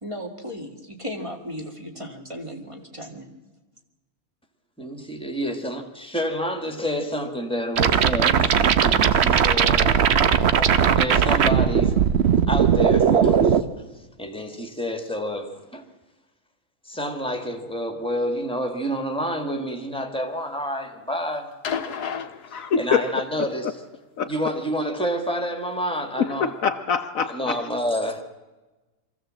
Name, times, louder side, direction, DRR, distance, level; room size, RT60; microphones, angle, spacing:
voice 1, 0.0-3.3, equal, 20° right, 2 dB, 2.0 m, -36 dB
voice 2, 4.8-10.0 10.4-12.0 12.5-13.6 14.2-15.8 16.9-21.5 22.8-23.8 24.2-26.5 27.2-28.2, equal, 5° left, 6 dB, 1.8 m, -29 dB
sound 1, 7.8-13.6, right 7 dB, 55° right, 0.9 m, -18 dB
sound 2, 21.6-23.3 24.6-24.7, left 7 dB, 85° left, 1.6 m, -32 dB
voice 3, 22.5-23.0 24.2-24.3 26.2-27.4, left 6 dB, 65° left, 8 dB, 1.2 m, -24 dB
23.5 x 15.0 x 7.6 m, 1.2 s
omnidirectional pair, 1.6 m